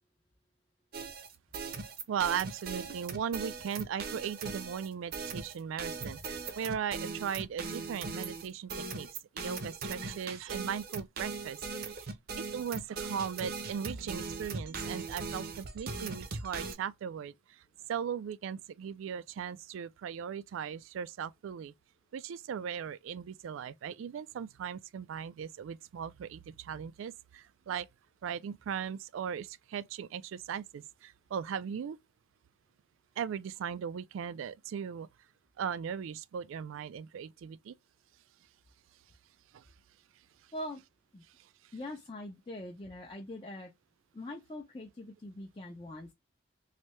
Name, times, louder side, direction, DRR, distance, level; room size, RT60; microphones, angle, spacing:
sound 1, 0.9-16.7, right 4 dB, 50° right, 0.6 m, -39 dB
voice 1, 2.1-9.1 9.3-11.6 11.8-21.7 22.1-27.9 28.2-32.0 33.2-35.1 35.6-37.7 39.5-39.7 41.4-41.5, right 7 dB, 80° right, 0.3 m, -38 dB
voice 2, 41.7-43.7 44.1-46.1, left 1 dB, 25° left, 0.5 m, -43 dB
3.3 x 2.7 x 3.1 m
head